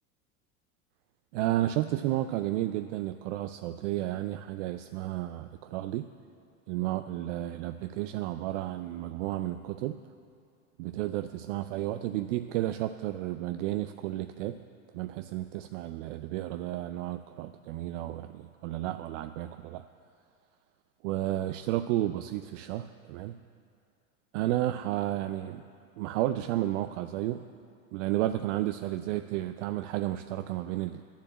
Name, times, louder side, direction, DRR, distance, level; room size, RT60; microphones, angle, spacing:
voice 1, 1.3-6.1 6.7-10.0 10.8-14.6 14.9-19.8 21.0-23.4 24.3-25.6 26.0-27.4 27.9-31.0, right 14 dB, 60° right, 10 dB, 0.5 m, -32 dB
9.8 x 7.1 x 8.5 m, 2.4 s
hypercardioid pair, 110°, 43 cm